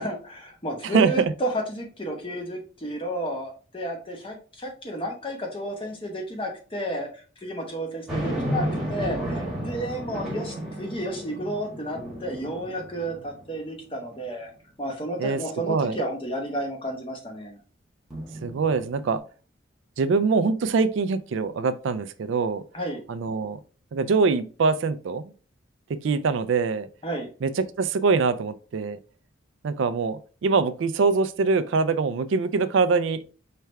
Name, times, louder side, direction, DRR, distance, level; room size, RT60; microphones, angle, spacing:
voice 1, 0.0-14.5 14.8-17.6 22.7-23.0 27.0-27.3, right 1 dB, 25° left, 1.0 m, -32 dB
voice 2, 0.9-1.3 15.2-15.4 15.7-16.0 18.4-19.2 20.0-22.6 23.1-23.6 23.9-25.3 25.9-26.9 27.4-29.0 29.6-33.2, right 4 dB, 70° right, 0.4 m, -23 dB
sound 1, 8.1-13.6 14.1-14.2 18.1-19.2, right 1 dB, ahead, 1.6 m, -32 dB
4.6 x 3.3 x 3.3 m
head